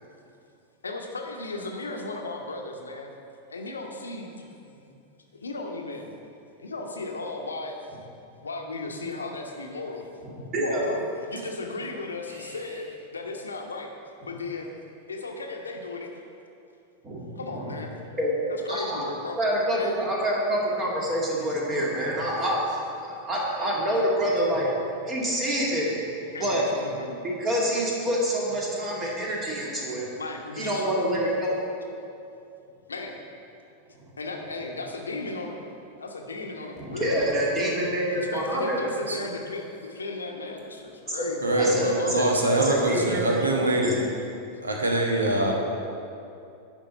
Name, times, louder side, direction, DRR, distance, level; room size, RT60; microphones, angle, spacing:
voice 1, 0.8-3.1 3.5-5.0 5.3-6.1 6.6-7.8 8.4-10.1 10.6-13.9 14.2-14.7 15.1-16.1 17.4-17.9 18.5-19.4 19.8-20.0 26.3-27.2 30.1-31.0 32.9-33.2 34.2-35.6 36.0-37.2 38.1-43.5, left 3 dB, 75° left, 2 dB, 0.9 m, -36 dB
voice 2, 10.2-10.8 17.0-17.2 17.6-17.7 18.2-18.3 18.7-19.0 19.4-24.7 25.1-25.9 26.4-26.6 27.2-30.1 30.6-31.6 36.8-38.9 41.2-41.3 41.6-42.2 42.5-43.4, equal, 25° right, -4 dB, 2.2 m, -26 dB
voice 3, 41.4-44.0 44.6-45.5, right 1 dB, 75° right, 0 dB, 1.2 m, -24 dB
10.0 x 4.5 x 6.6 m, 2.6 s
figure-of-eight pair, 90°, 0 cm